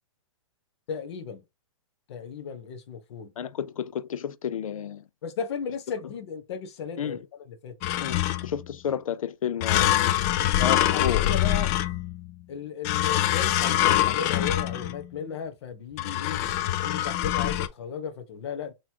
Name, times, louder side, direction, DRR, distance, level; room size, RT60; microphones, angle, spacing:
voice 1, 0.9-1.4 2.1-3.3 5.2-7.2 7.5-7.7 10.9-11.7 12.5-16.4 16.8-18.7, left 6 dB, 55° left, 1.1 m, -35 dB
voice 2, 3.4-5.0 7.0-7.2 7.9-9.9 10.6-11.2, left 8 dB, 90° left, 0.5 m, -31 dB
sound 1, 7.8-8.6 9.6-12.3 12.8-15.1 16.0-17.7, left 13 dB, 30° left, 0.3 m, -24 dB
4.0 x 3.1 x 2.8 m
hypercardioid pair, 150°, 17 cm